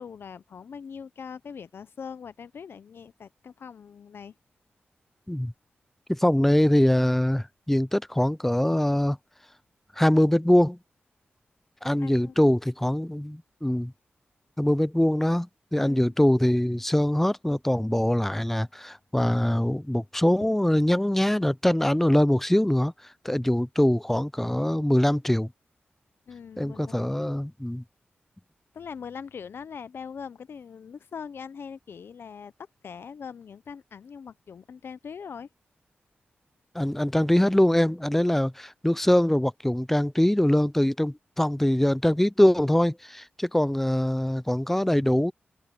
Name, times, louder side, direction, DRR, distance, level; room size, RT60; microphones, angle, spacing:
voice 1, 0.0-4.4 11.9-12.5 15.8-16.1 26.3-27.4 28.7-32.5 32.8-35.5, left 6 dB, 75° left, 0.6 m, -41 dB
voice 2, 6.1-9.2 10.0-10.8 11.8-13.9 14.6-22.9 23.2-25.5 26.6-27.8 36.7-45.3, left 1 dB, 5° left, 0.5 m, -23 dB
open air
wide cardioid pair, 80°, 4 cm